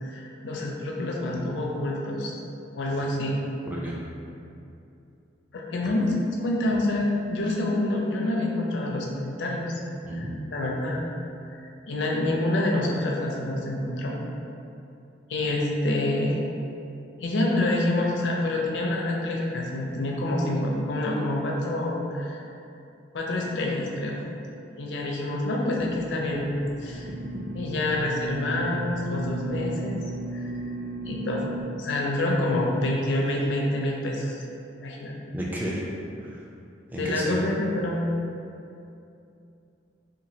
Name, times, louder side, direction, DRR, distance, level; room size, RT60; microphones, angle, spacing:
voice 1, 0.0-2.3 2.7-3.4 5.5-6.1 6.4-9.7 10.2-10.3 10.5-11.0 11.5-14.1 15.3-16.4 17.2-22.5 23.1-24.2 24.8-26.5 26.8-27.1 27.5-30.0 30.3-30.5 31.1-31.5 31.7-34.4 34.8-35.2 37.0-38.0, left 1 dB, 75° left, -2 dB, 0.5 m, -27 dB
voice 2, 3.7-4.0 10.0-10.4 35.3-35.9 36.2-36.5 36.9-37.3, equal, 10° right, -4 dB, 0.4 m, -32 dB
sound 1, 25.8-31.6, right 2 dB, 55° right, 0.8 m, -35 dB
2.9 x 2.3 x 2.7 m, 2.7 s
head